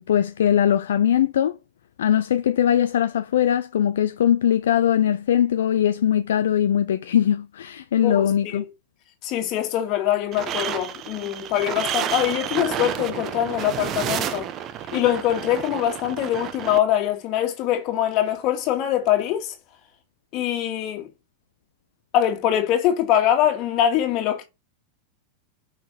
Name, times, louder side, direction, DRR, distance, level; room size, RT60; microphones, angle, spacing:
voice 1, 0.0-1.6 2.0-8.6, left 10 dB, 60° left, 0.5 m, -21 dB
voice 2, 8.0-8.6 9.2-14.5 14.9-19.5 20.3-21.1 22.1-24.4, left 11 dB, 40° left, 2.3 m, -23 dB
sound 1, 10.3-16.8, right 10 dB, 35° right, 1.1 m, -30 dB
6.1 x 5.9 x 6.0 m
figure-of-eight pair, 90°, 0 cm